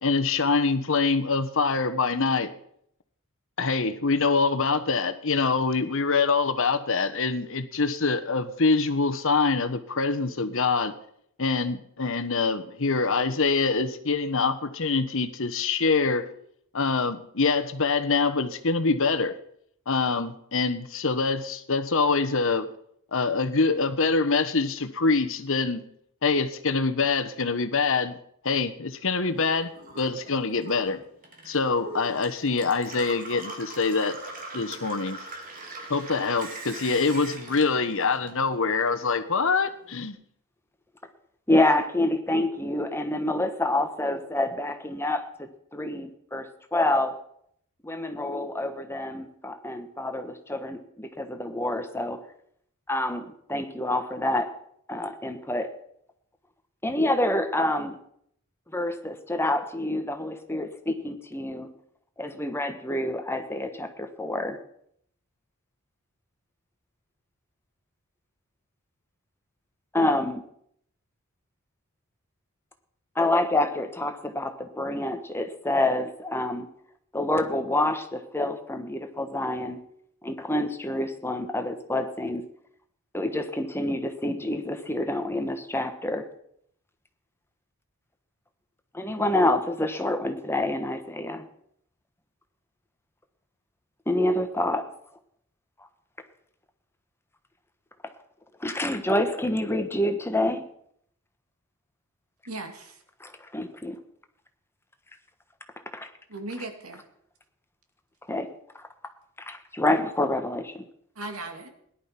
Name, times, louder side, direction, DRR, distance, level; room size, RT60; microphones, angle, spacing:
voice 1, 0.0-2.5 3.6-10.9 11.4-16.2 16.7-19.3 19.9-22.7 23.1-25.8 26.2-28.2 28.4-31.0 31.4-34.2 34.5-35.2 35.9-40.1, left 4 dB, 60° left, 11 dB, 1.2 m, -25 dB
Gurgling / Water tap faucet / Sink (filling or washing), 29.3-38.8 39.1-40.0, right 2 dB, 40° right, 3.2 m, -42 dB
voice 2, 41.5-46.5 46.7-47.2 47.8-52.2 52.9-54.5 54.9-55.7 56.8-58.0 58.7-61.7 62.2-64.6 69.9-70.4 73.1-76.7 77.1-79.8 80.2-82.4 83.1-86.3 88.9-91.4 94.1-94.8 98.6-100.6 103.2-104.0 105.9-106.1 108.3-108.5 108.8-108.9 109.4-110.8, left 1 dB, 10° left, 7 dB, 1.2 m, -27 dB
voice 3, 102.5-103.0 106.3-107.0 111.2-111.7, right 2 dB, 75° right, 5 dB, 2.6 m, -37 dB
17.5 x 11.5 x 5.9 m, 0.69 s
head